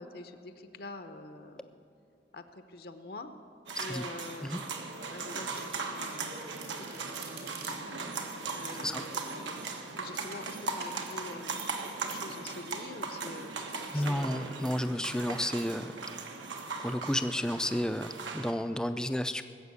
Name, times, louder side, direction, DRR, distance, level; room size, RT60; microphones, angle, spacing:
voice 1, 0.0-1.8 2.3-3.3 3.8-4.7 5.1-14.6, left 2 dB, 55° left, 8 dB, 0.8 m, -46 dB
sound 1, 3.7-18.5, right 4 dB, 85° right, 1.4 m, -38 dB
Domestic sounds home sounds, 5.3-6.0 6.3-8.0 8.6-9.8 10.3-10.5 10.8-11.0, right 5 dB, 65° right, 2.5 m, -48 dB
voice 2, 13.9-16.0 16.8-19.4, left 1 dB, 5° left, 10 dB, 0.4 m, -32 dB
19.0 x 7.4 x 8.3 m, 2.6 s
head